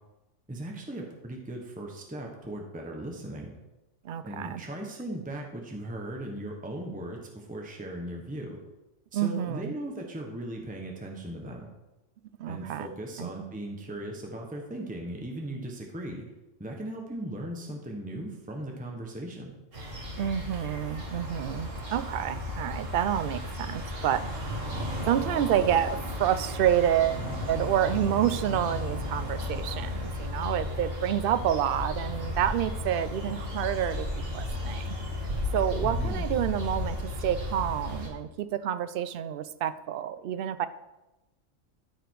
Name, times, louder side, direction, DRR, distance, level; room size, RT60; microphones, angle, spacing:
voice 1, 0.5-3.5 4.2-8.6 9.1-11.7 12.5-16.2 16.6-19.5 35.8-36.2, right 1 dB, 5° right, 1 dB, 1.1 m, -38 dB
voice 2, 4.0-4.6 9.1-9.8 12.4-12.9 13.2-13.3 20.2-24.6 25.1-35.0 35.5-40.7, right 10 dB, 60° right, 13 dB, 0.6 m, -28 dB
sound 1, 19.7-38.1, left 1 dB, 80° right, 2.2 m, -34 dB
13.0 x 5.0 x 4.7 m, 1.0 s
omnidirectional pair, 1.3 m